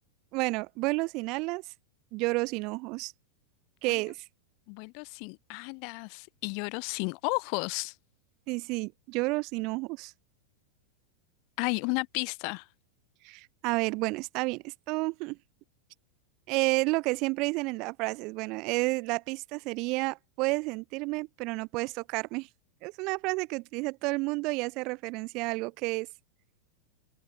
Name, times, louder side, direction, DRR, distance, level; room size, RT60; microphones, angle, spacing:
voice 1, 0.3-1.6 2.1-3.1 3.8-4.2 8.5-10.1 13.2-15.4 16.5-22.5 22.8-26.1, right 25 dB, 40° right, 0.5 m, -31 dB
voice 2, 4.7-7.9 11.6-12.6, left 39 dB, 45° left, 0.4 m, -33 dB
open air
figure-of-eight pair, 90°, 0 cm